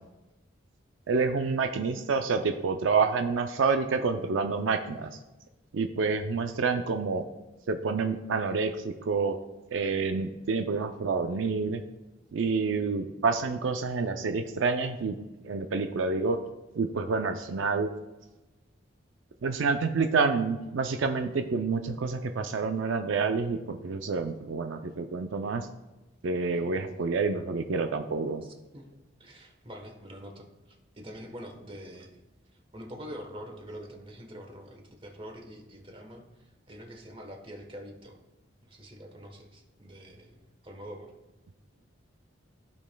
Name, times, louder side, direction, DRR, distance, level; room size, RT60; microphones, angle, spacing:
voice 1, 1.1-5.2 5.7-7.2 7.7-9.4 9.7-11.8 12.3-15.2 15.4-16.4 16.7-17.9 19.4-25.7 26.2-28.4, right 4 dB, 85° right, 6 dB, 0.4 m, -28 dB
voice 2, 26.5-26.9 28.4-28.9 29.2-32.2 32.5-38.2 38.6-41.1, equal, 30° right, 3 dB, 1.1 m, -45 dB
14.5 x 5.2 x 2.2 m, 1.0 s
head